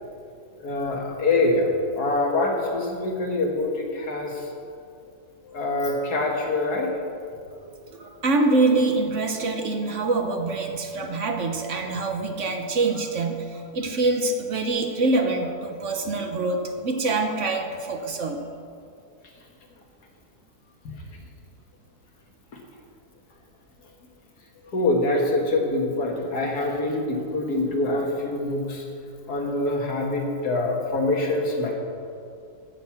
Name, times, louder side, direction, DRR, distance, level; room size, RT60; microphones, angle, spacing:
voice 1, 0.6-4.5 5.4-6.9 20.8-21.0 24.7-28.9 29.3-31.7, left 2 dB, 80° left, 0 dB, 2.2 m, -25 dB
voice 2, 7.7-18.4, right 3 dB, 55° right, 5 dB, 1.2 m, -25 dB
15.0 x 6.7 x 5.9 m, 2.4 s
omnidirectional pair, 1.7 m